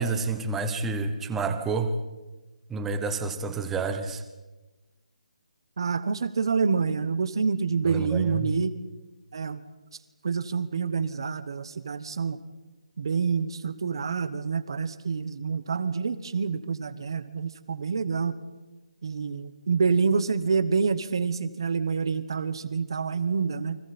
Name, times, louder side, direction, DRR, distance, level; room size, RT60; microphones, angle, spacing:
voice 1, 0.0-1.9 2.7-4.2 7.9-8.5, right 4 dB, 5° right, 8 dB, 0.8 m, -29 dB
voice 2, 5.8-8.7 9.3-9.6 10.2-12.4 13.0-18.3 19.0-23.8, right 5 dB, 40° right, 13 dB, 1.3 m, -27 dB
30.0 x 25.0 x 4.4 m, 1.1 s
hypercardioid pair, 180°, 4 cm